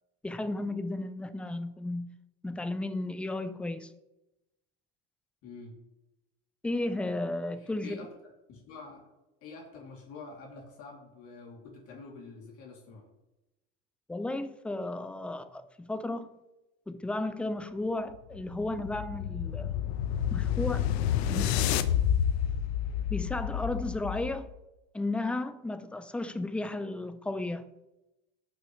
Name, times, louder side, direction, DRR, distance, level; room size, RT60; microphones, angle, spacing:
voice 1, 0.2-2.1 2.4-3.9 6.6-8.0 14.1-16.3 16.9-19.7 20.3-20.9 21.3-21.8 23.1-24.5 24.9-27.7, left 2 dB, 5° left, 0.4 m, -34 dB
voice 2, 5.4-5.7 7.6-8.1 8.5-9.1 9.4-13.1, left 4 dB, 45° left, 2.8 m, -47 dB
sound 1, 18.1-24.5, left 9 dB, 75° left, 0.9 m, -29 dB
18.0 x 6.3 x 3.2 m
supercardioid pair, 135°, 32 cm